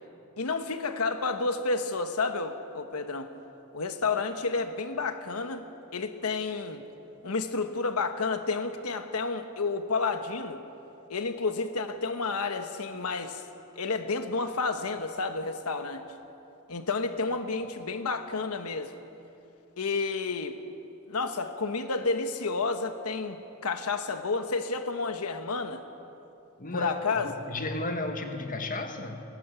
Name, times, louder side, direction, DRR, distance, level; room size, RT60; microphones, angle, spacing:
voice 1, 0.4-3.3 3.7-6.8 7.2-10.6 11.1-13.4 13.8-16.1 16.7-19.0 19.8-20.6 21.1-25.8 26.7-27.3, left 4 dB, 85° left, 8 dB, 1.1 m, -30 dB
voice 2, 26.6-27.0 27.2-29.2, left 2 dB, 40° left, 6 dB, 1.6 m, -33 dB
21.5 x 18.0 x 8.2 m, 2.9 s
head